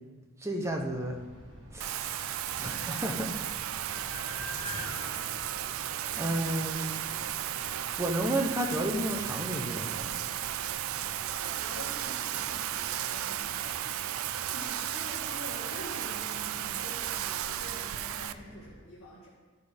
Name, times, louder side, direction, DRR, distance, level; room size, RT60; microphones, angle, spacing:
voice 1, 0.4-1.2 1.7-3.3 6.2-6.9 8.0-10.1, right 1 dB, 15° right, 1 dB, 0.7 m, -32 dB
sound 1, 0.6-18.7, equal, 55° right, 1.7 m, -50 dB
Bathtub (filling or washing), 1.8-18.3, right 12 dB, 70° right, 0.3 m, -34 dB
sound 2, 3.1-7.2, left 1 dB, 10° left, 1.2 m, -45 dB
voice 2, 11.3-12.7 13.1-13.9 14.5-19.3, left 1 dB, 85° left, -7 dB, 1.7 m, -46 dB
13.0 x 5.3 x 3.5 m, 1.4 s
head